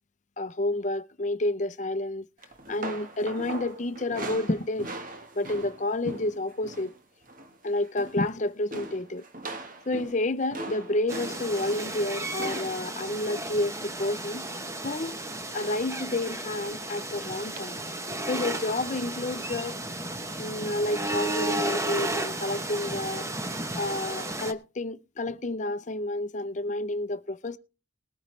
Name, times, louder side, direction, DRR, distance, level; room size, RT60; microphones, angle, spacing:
voice 1, 0.4-2.3 2.7-4.9 5.4-7.0 7.6-9.3 9.9-14.5 14.8-15.1 15.5-17.8 18.2-19.8 20.4-23.3 23.7-27.6, left 2 dB, 40° left, 0.7 m, -30 dB
sound 1, 2.4-7.0 7.2-7.6 7.8-8.3 8.7-14.7 15.6-16.0 16.3-16.5 17.6-17.7, right 2 dB, 45° right, 1.4 m, -41 dB
sound 2, 11.1-24.5, right 2 dB, 15° right, 0.9 m, -34 dB
20.0 x 9.3 x 3.3 m
head